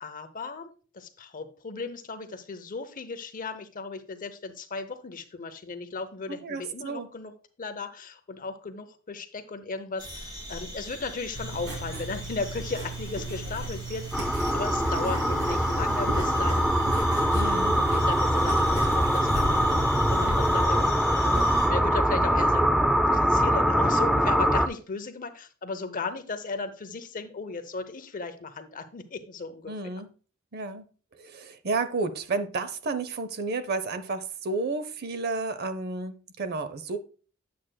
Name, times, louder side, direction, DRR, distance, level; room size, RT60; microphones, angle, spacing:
voice 1, 0.0-7.3 7.6-16.7 17.4-29.7, left 4 dB, 40° left, 9 dB, 0.7 m, -36 dB
voice 2, 6.3-7.1 17.3-17.8 29.7-30.1 30.5-30.9 31.2-37.0, right 3 dB, 50° right, 11 dB, 0.6 m, -31 dB
sound 1, 10.0-21.7, equal, 20° right, 2.7 m, -41 dB
Writing, 11.3-20.6, right 2 dB, 80° right, 2.8 m, -36 dB
sound 2, 14.1-24.7, equal, ahead, 0.3 m, -23 dB
8.5 x 7.5 x 2.2 m, 0.39 s
head